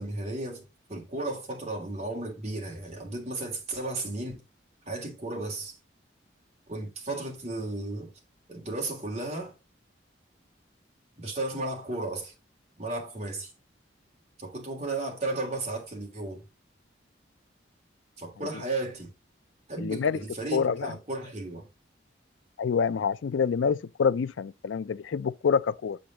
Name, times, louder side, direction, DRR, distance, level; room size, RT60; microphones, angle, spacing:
voice 1, 0.0-4.4 4.9-5.8 6.7-8.1 8.5-9.5 11.2-12.3 12.8-13.5 14.4-16.4 18.2-19.1 19.7-21.7, right 2 dB, 35° right, 2.7 m, -34 dB
voice 2, 19.8-20.2 20.5-21.0 22.6-26.0, left 6 dB, 85° left, 0.4 m, -27 dB
7.8 x 5.1 x 2.9 m
head